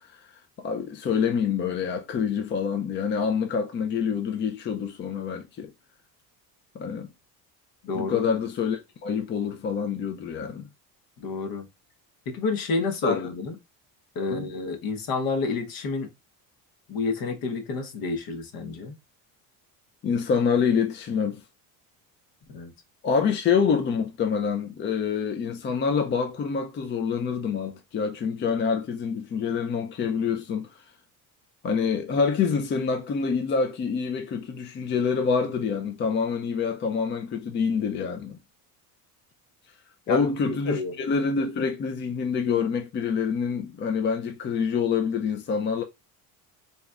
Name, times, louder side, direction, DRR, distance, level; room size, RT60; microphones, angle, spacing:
voice 1, 0.6-5.7 6.7-7.1 7.9-10.7 13.0-13.3 14.3-14.5 20.0-21.4 23.0-30.7 31.6-38.4 40.1-45.8, left 6 dB, 30° left, 0.4 m, -26 dB
voice 2, 7.8-8.3 11.2-11.7 12.3-13.5 14.1-16.1 16.9-18.9 22.5-22.7 40.1-40.2 40.7-41.0, left 3 dB, 60° left, 1.0 m, -29 dB
4.1 x 3.3 x 2.4 m
cardioid pair, 145°, 40 cm